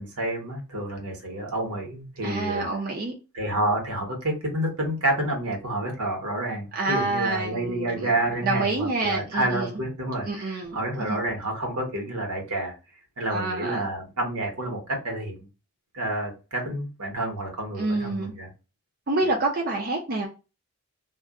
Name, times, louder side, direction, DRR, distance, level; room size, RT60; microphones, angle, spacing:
voice 1, 0.0-2.7 3.3-12.8 13.2-15.5 15.9-18.5, right 1 dB, 80° right, 1.1 m, -29 dB
voice 2, 2.2-3.1 6.7-8.1 8.4-9.8 10.3-11.2 13.3-13.8 17.8-18.3 19.1-20.3, right 2 dB, 40° right, 0.5 m, -27 dB
2.5 x 2.1 x 3.6 m
head